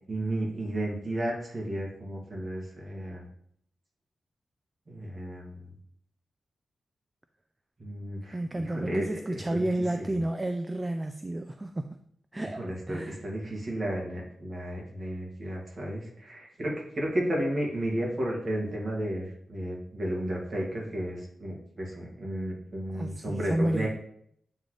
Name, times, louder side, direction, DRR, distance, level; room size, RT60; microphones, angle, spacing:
voice 1, 0.1-3.2 4.9-5.7 7.8-9.7 10.0-10.2 12.3-23.9, right 1 dB, 35° right, -2 dB, 2.1 m, -33 dB
voice 2, 8.3-12.0 12.3-13.2 22.9-23.9, right 1 dB, 15° right, 7 dB, 0.4 m, -31 dB
8.7 x 3.9 x 3.3 m, 0.67 s
wide cardioid pair, 125°, 0 cm